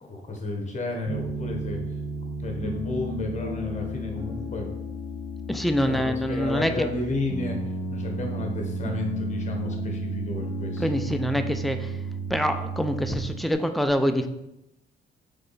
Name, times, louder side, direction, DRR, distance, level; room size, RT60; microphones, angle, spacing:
voice 1, 0.0-1.8 2.4-4.7 5.8-7.6 7.9-10.9 12.3-12.4, left 2 dB, 35° left, 2 dB, 1.0 m, -32 dB
Piano, 1.0-13.5, right 1 dB, 45° right, 1.6 m, -33 dB
voice 2, 5.5-6.9 10.8-11.9 12.3-14.3, equal, ahead, 7 dB, 0.3 m, -25 dB
3.5 x 3.3 x 3.9 m, 0.88 s
cardioid pair, 90°, 20 cm